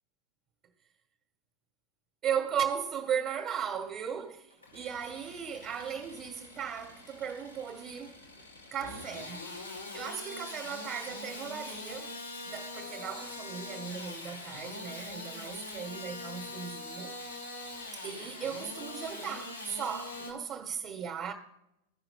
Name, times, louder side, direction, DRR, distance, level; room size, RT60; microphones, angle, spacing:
voice 1, 2.2-8.2 8.7-9.5 9.9-12.2 12.4-17.2 17.9-21.3, right 8 dB, 25° right, 1.1 m, -37 dB
Engine starting / Sawing, 4.5-20.3, left 2 dB, 80° left, 2.1 m, -43 dB
14.5 x 5.7 x 3.4 m
figure-of-eight pair, 90°, 0 cm